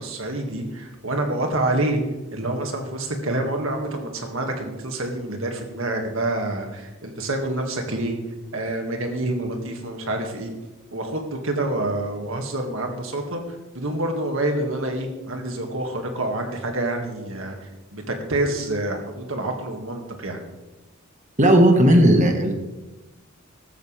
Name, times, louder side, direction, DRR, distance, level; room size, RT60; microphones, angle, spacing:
voice 1, 0.0-2.0 2.3-8.2 8.5-10.5 10.9-13.4 13.7-20.4, right 1 dB, 75° right, 3 dB, 2.2 m, -27 dB
voice 2, 21.4-22.5, right 1 dB, 35° right, 4 dB, 1.5 m, -15 dB
14.5 x 13.0 x 3.5 m, 1.1 s
head